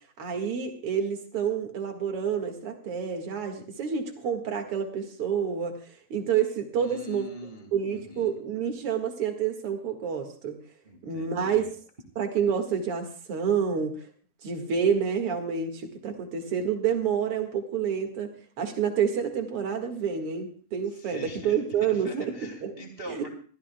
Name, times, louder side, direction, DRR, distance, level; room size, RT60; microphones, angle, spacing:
voice 1, 0.2-7.3 7.7-10.6 11.0-11.6 12.2-14.1 14.4-18.3 18.6-22.7 23.1-23.2, right 7 dB, 50° right, 4 dB, 2.6 m, -28 dB
voice 2, 6.8-8.4 10.8-11.6 20.9-21.5 21.8-23.3, left 1 dB, 25° right, 1 dB, 1.6 m, -43 dB
24.0 x 14.0 x 2.3 m, 0.43 s
omnidirectional pair, 3.6 m